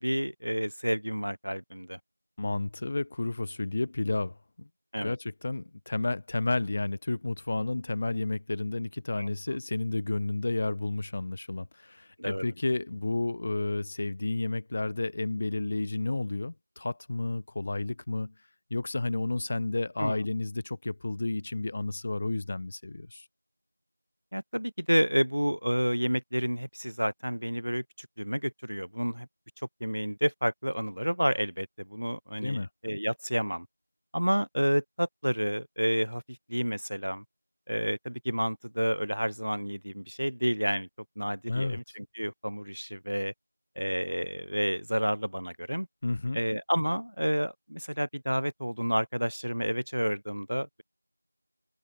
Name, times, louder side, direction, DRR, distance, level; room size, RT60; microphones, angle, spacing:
voice 1, 0.0-2.0 4.9-5.2 9.2-9.6 12.2-12.4 20.0-20.2 24.3-29.3 29.8-33.7 34.1-36.2 36.5-37.2 37.7-40.9 41.2-43.3 43.8-45.9 46.3-50.8, equal, 70° right, 7.9 m, -30 dB
voice 2, 2.4-4.7 5.0-18.3 18.7-23.3 32.4-32.7 41.5-41.8 46.0-46.4, left 2 dB, 10° left, 5.8 m, -31 dB
figure-of-eight pair, 180°, 0 cm